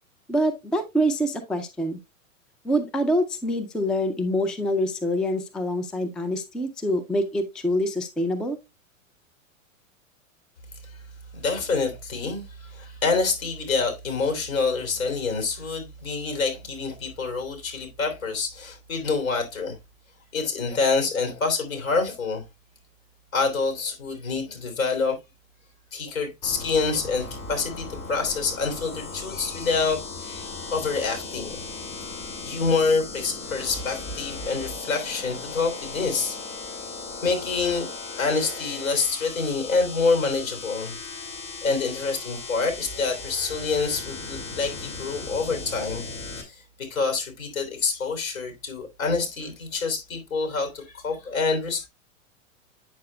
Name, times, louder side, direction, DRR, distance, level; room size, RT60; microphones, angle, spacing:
voice 1, 0.3-2.0 2.6-8.6, equal, ahead, 0.4 m, -25 dB
voice 2, 11.3-19.8 20.3-22.4 23.3-25.2 25.9-31.6 32.4-36.4 37.2-37.9 38.2-40.9 41.6-46.1 46.4-51.9, left 4 dB, 80° left, 3.3 m, -27 dB
sound 1, 26.4-46.4, left 3 dB, 40° left, 2.4 m, -37 dB
8.6 x 6.5 x 2.2 m
hypercardioid pair, 115°, 41 cm